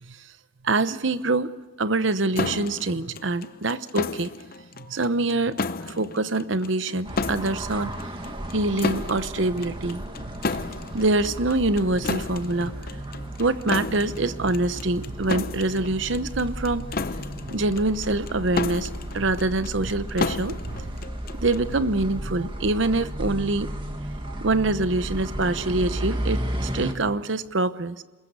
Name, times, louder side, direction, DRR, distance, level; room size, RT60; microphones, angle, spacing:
voice 1, 0.6-1.5 1.8-4.3 4.8-7.9 8.3-10.6 10.9-12.8 13.4-16.9 17.4-20.9 21.4-23.7 24.2-28.0, right 2 dB, 65° right, 13 dB, 0.9 m, -25 dB
sound 1, 2.4-21.7, left 3 dB, 45° left, 0.7 m, -33 dB
sound 2, 7.0-26.9, right 1 dB, 25° right, 2.0 m, -34 dB
24.0 x 20.5 x 8.2 m, 1.2 s
head